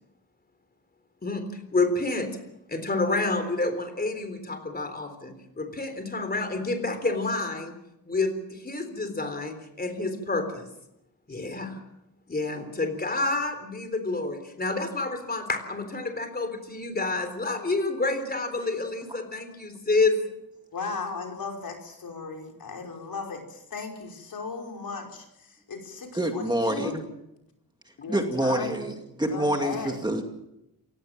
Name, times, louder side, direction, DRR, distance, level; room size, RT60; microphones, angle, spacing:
voice 1, 1.7-2.3 2.7-7.8 8.1-10.6 11.3-11.8 12.3-20.2, left 3 dB, 25° left, 8 dB, 3.7 m, -28 dB
voice 2, 20.7-27.0 28.0-28.8 29.3-30.0, left 4 dB, 65° left, 2 dB, 5.5 m, -36 dB
voice 3, 26.1-27.0 28.1-28.9 29.2-30.2, right 1 dB, 10° right, 4 dB, 2.3 m, -26 dB
28.0 x 17.0 x 7.5 m, 0.86 s
wide cardioid pair, 140°, 38 cm